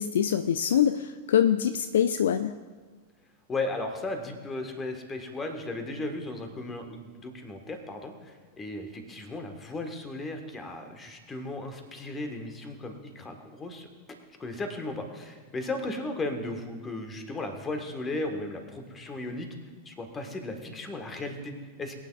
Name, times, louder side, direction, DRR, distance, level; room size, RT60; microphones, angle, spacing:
voice 1, 0.0-2.6, left 9 dB, 60° left, 11 dB, 0.3 m, -24 dB
voice 2, 3.5-13.9 14.4-19.5 19.8-22.0, left 2 dB, 20° left, 5 dB, 1.5 m, -36 dB
22.5 x 9.0 x 2.4 m, 1.4 s
figure-of-eight pair, 90°, 0 cm